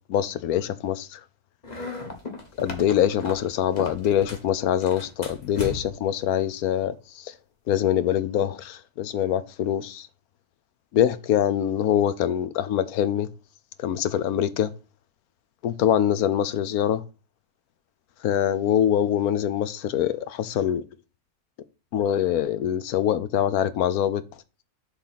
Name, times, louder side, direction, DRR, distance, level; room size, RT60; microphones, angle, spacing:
voice 1, 0.1-1.2 2.6-7.3 7.7-10.1 10.9-13.3 13.8-14.7 15.6-17.0 18.2-20.8 21.9-24.2, left 10 dB, 75° left, 1.2 m, -24 dB
sound 1, 1.6-4.5 4.8-6.1, left 3 dB, 30° left, 1.4 m, -36 dB
7.3 x 3.9 x 5.7 m
omnidirectional pair, 1.6 m